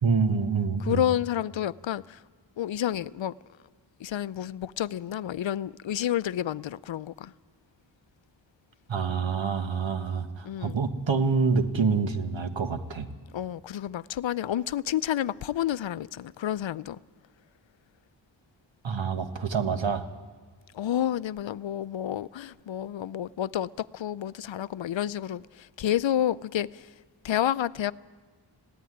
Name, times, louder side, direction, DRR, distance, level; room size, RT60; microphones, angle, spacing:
voice 1, 0.0-1.0 8.9-13.1 18.8-20.1, right 5 dB, 80° right, 1.5 m, -27 dB
voice 2, 0.8-2.2 2.6-3.3 4.0-7.3 10.4-10.8 13.3-17.0 20.7-26.9 27.2-27.9, left 11 dB, 80° left, 0.6 m, -30 dB
19.5 x 16.0 x 9.9 m
wide cardioid pair, 85°, 45 cm